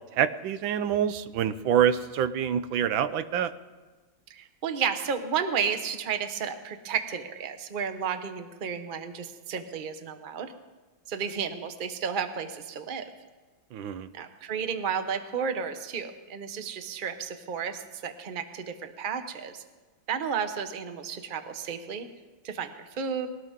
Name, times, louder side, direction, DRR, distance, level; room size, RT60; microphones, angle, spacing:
voice 1, 0.1-3.5 13.7-14.1, right 9 dB, 80° right, 12 dB, 1.4 m, -26 dB
voice 2, 4.3-10.5 11.1-13.1 14.1-19.6 20.1-22.1 22.4-23.3, right 7 dB, 35° right, 8 dB, 0.8 m, -32 dB
22.0 x 18.0 x 3.7 m, 1.3 s
omnidirectional pair, 2.1 m